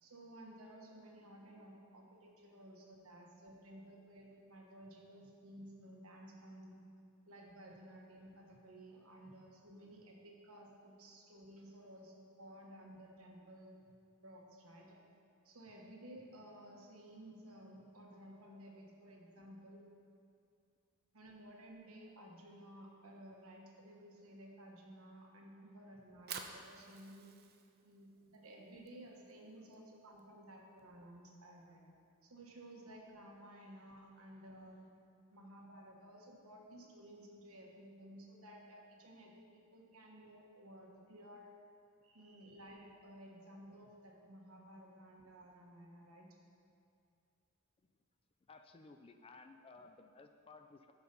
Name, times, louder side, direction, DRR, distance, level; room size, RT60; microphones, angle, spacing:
voice 1, 0.0-6.8 7.3-13.9 14.2-15.0 15.4-19.8 21.1-27.3 27.8-31.8 32.2-34.9 35.3-41.5 42.0-46.4, right 1 dB, 70° right, 0 dB, 1.3 m, -55 dB
Fire, 26.1-32.2, right 6 dB, 45° right, 0.6 m, -53 dB
voice 2, 48.4-50.9, left 3 dB, 25° left, 7 dB, 0.4 m, -57 dB
12.5 x 4.8 x 5.2 m, 2.4 s
head